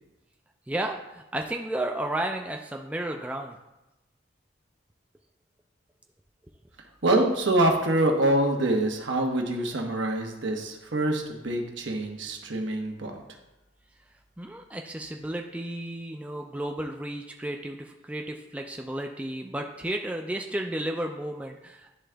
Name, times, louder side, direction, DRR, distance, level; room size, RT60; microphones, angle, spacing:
voice 1, 0.7-3.6 14.4-22.0, right 1 dB, 5° right, 2 dB, 0.3 m, -33 dB
voice 2, 7.0-13.2, right 1 dB, 80° right, 2 dB, 1.1 m, -25 dB
11.0 x 3.7 x 3.4 m, 0.98 s
head